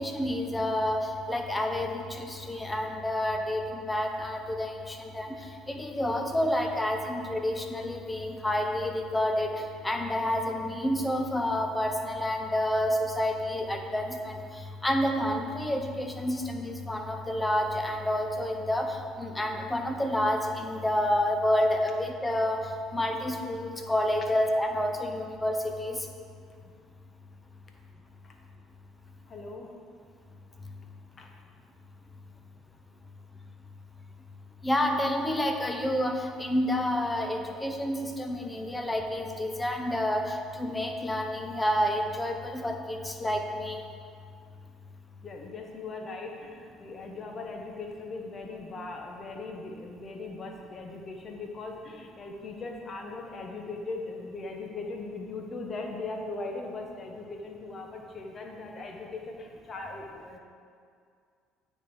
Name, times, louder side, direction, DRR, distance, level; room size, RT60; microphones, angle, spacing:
voice 1, 0.0-26.1 34.6-43.8, left 1 dB, 15° left, 4 dB, 0.8 m, -29 dB
voice 2, 29.3-29.7 31.2-31.3 45.2-60.4, left 3 dB, 40° left, 1 dB, 1.0 m, -39 dB
9.0 x 3.4 x 4.4 m, 2.2 s
supercardioid pair, 75°, 0 cm